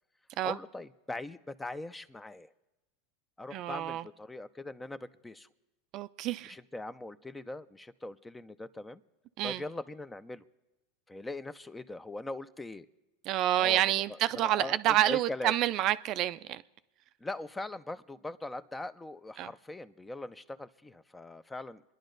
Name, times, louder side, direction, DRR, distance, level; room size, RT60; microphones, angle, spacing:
voice 1, 0.4-2.5 3.4-5.5 6.5-9.0 9.4-10.4 11.1-12.9 13.6-13.8 14.1-15.5 17.2-21.8, left 2 dB, 10° left, 0.5 m, -41 dB
voice 2, 3.5-4.1 5.9-6.6 9.4-9.6 13.2-16.6 19.4-19.5, right 13 dB, 50° right, 0.4 m, -28 dB
26.5 x 10.5 x 3.9 m
supercardioid pair, 115°, 0 cm